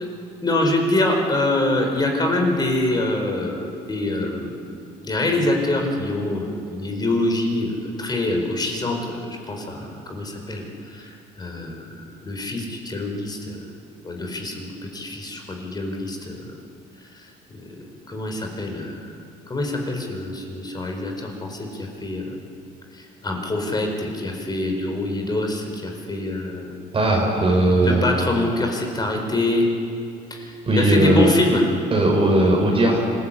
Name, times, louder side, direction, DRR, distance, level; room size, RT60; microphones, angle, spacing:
voice 1, 0.4-4.7 5.0-10.6 10.9-13.7 14.0-16.4 17.2-17.3 18.1-19.0 19.5-22.4 22.9-26.9 27.8-29.7 30.3-31.6, left 2 dB, 25° left, 2 dB, 4.4 m, -25 dB
voice 2, 26.9-28.0 30.7-31.3 31.9-33.0, right 1 dB, 35° right, -1 dB, 4.3 m, -18 dB
26.0 x 15.5 x 8.7 m, 2.5 s
cardioid pair, 110°, 17 cm